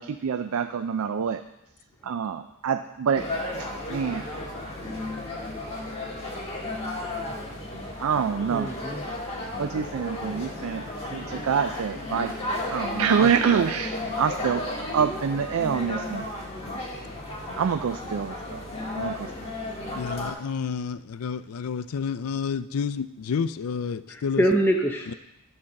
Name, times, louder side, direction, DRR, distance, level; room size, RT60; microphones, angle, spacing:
voice 1, 0.0-1.4 2.0-3.2 3.6-4.3 8.0-8.7 9.6-10.8 11.1-14.6 14.9-16.3 17.5-18.6 19.0-19.3, right 7 dB, 70° right, 9 dB, 0.4 m, -26 dB
sound 1, 3.1-20.3, left 1 dB, 30° left, 1.7 m, -34 dB
voice 2, 8.5-9.0 24.1-25.1, equal, 10° left, 1 dB, 0.6 m, -24 dB
voice 3, 20.0-24.4 25.1-25.2, left 6 dB, 85° left, 13 dB, 0.4 m, -30 dB
11.0 x 4.3 x 6.4 m, 0.90 s
head